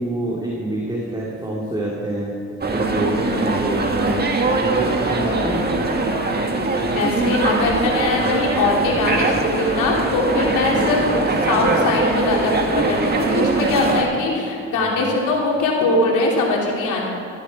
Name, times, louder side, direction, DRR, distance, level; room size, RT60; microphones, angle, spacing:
voice 1, 0.0-2.4 2.7-4.3 4.6-5.8 10.7-10.9 14.8-15.2, right 1 dB, 15° right, -5 dB, 2.7 m, -26 dB
sound 1, 2.6-14.0, right 2 dB, 35° right, 1.8 m, -21 dB
voice 2, 6.9-11.0 11.5-17.1, left 2 dB, 85° left, -2 dB, 3.0 m, -21 dB
Wind instrument woodwind instrument, 10.0-14.6, left 1 dB, 35° left, 3.9 m, -34 dB
14.5 x 14.0 x 4.3 m, 2.8 s
cardioid pair, 90°, 30 cm